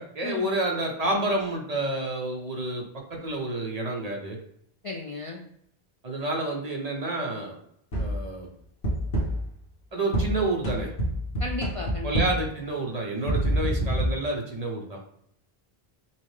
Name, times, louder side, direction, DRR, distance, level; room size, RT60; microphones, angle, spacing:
voice 1, 0.0-4.4 6.0-7.6 8.0-8.5 9.9-10.9 12.0-15.0, right 2 dB, 40° right, 0 dB, 0.8 m, -29 dB
voice 2, 4.8-5.4 11.4-12.2 13.2-13.4, left 3 dB, 50° left, 1 dB, 0.4 m, -35 dB
sound 1, 7.9-8.3 8.8-9.5 10.1-12.6 13.3-14.1, right 1 dB, 80° left, 1.3 m, -27 dB
5.6 x 2.1 x 3.2 m, 0.70 s
omnidirectional pair, 1.0 m